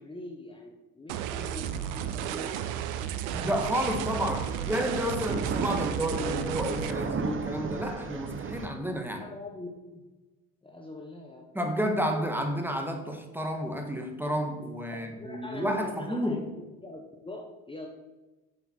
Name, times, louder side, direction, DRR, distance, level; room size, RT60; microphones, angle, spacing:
voice 1, 0.0-3.1 9.1-10.0 10.6-11.5 15.2-17.9, left 2 dB, 10° left, 1 dB, 1.1 m, -43 dB
sound 1, 1.1-6.9, right 10 dB, 75° right, 0.7 m, -33 dB
sound 2, 3.3-8.7, right 5 dB, 30° right, 0.8 m, -35 dB
voice 2, 3.4-9.3 11.5-16.5, equal, 5° right, 4 dB, 1.5 m, -31 dB
7.2 x 6.5 x 4.4 m, 1.1 s
hypercardioid pair, 65°, 42 cm